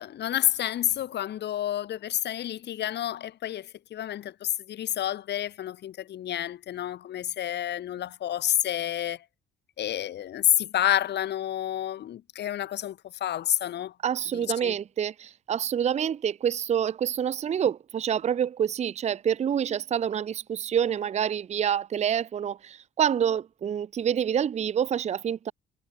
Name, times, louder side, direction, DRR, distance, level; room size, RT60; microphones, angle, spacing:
voice 1, 0.0-9.2 9.8-13.9 14.3-14.8, left 11 dB, 60° left, 0.7 m, -29 dB
voice 2, 14.0-25.5, right 9 dB, 35° right, 0.5 m, -27 dB
cardioid pair, 90°, 20 cm